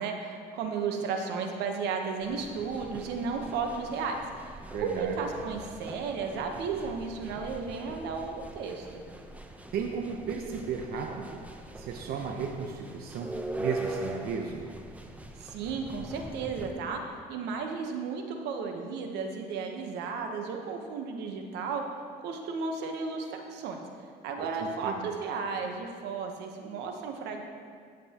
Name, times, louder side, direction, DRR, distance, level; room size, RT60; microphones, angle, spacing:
voice 1, 0.0-9.0 15.4-17.0 17.3-23.8 24.2-27.4, right 5 dB, 85° right, 3 dB, 1.1 m, -34 dB
sound 1, 2.2-16.7, right 1 dB, 10° right, 0.7 m, -42 dB
voice 2, 4.7-5.2 9.7-11.4 11.8-13.3 13.6-14.7 24.4-25.1, right 6 dB, 65° right, 2 dB, 0.8 m, -35 dB
15.0 x 7.8 x 3.0 m, 2.1 s
cardioid pair, 110°, 17 cm